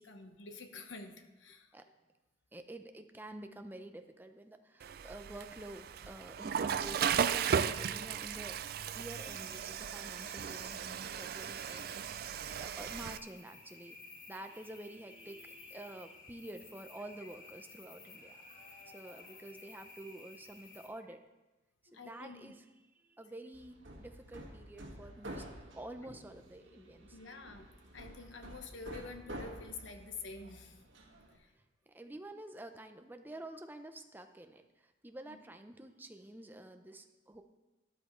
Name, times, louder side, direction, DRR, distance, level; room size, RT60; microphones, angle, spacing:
voice 1, 0.0-1.8 13.0-13.1 21.9-22.5 27.1-27.7 27.9-30.8 31.3-31.5 35.3-35.4, left 3 dB, 80° left, 6 dB, 1.1 m, -48 dB
voice 2, 2.5-8.6 8.9-11.9 12.6-14.0 14.3-18.4 18.9-21.2 21.9-22.7 23.1-27.2 31.5-37.4, right 1 dB, 10° right, 6 dB, 0.6 m, -49 dB
Water / Toilet flush, 4.8-13.2, right 7 dB, 55° right, 0.4 m, -36 dB
sound 1, 9.1-20.9, left 3 dB, 45° left, 1.6 m, -55 dB
Hammer, 23.5-31.4, right 1 dB, 90° right, 1.8 m, -50 dB
12.5 x 11.0 x 3.2 m, 1.1 s
head